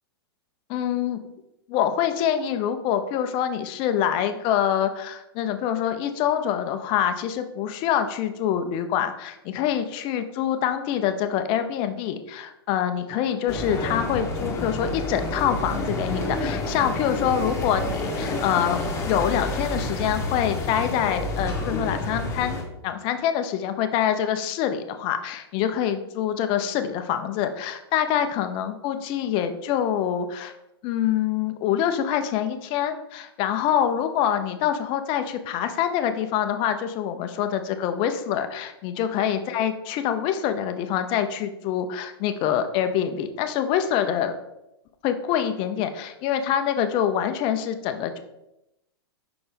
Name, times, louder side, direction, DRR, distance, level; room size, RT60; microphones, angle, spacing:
voice 1, 0.7-1.2 1.7-18.8 19.1-22.6 22.8-30.5 30.8-44.3 45.0-48.2, left 9 dB, 40° left, 9 dB, 0.7 m, -25 dB
sound 1, 13.5-22.6, left 2 dB, 20° left, 1.4 m, -29 dB
5.7 x 4.3 x 5.2 m, 0.87 s
hypercardioid pair, 110°, 13 cm